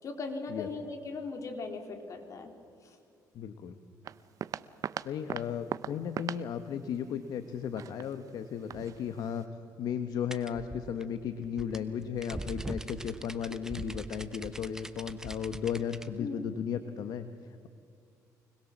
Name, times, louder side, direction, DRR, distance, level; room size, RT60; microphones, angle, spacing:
voice 1, 0.0-2.5 2.8-3.0 16.2-16.4, left 4 dB, 50° left, 4 dB, 3.6 m, -38 dB
voice 2, 3.3-3.8 5.0-9.4 9.8-17.3, left 8 dB, 65° left, 9 dB, 1.2 m, -35 dB
sound 1, 4.0-9.4, right 9 dB, 55° right, 0.7 m, -41 dB
sound 2, 10.3-16.1, right 1 dB, 10° right, 1.1 m, -42 dB
25.5 x 21.0 x 7.3 m, 2.4 s
cardioid pair, 100°, 7 cm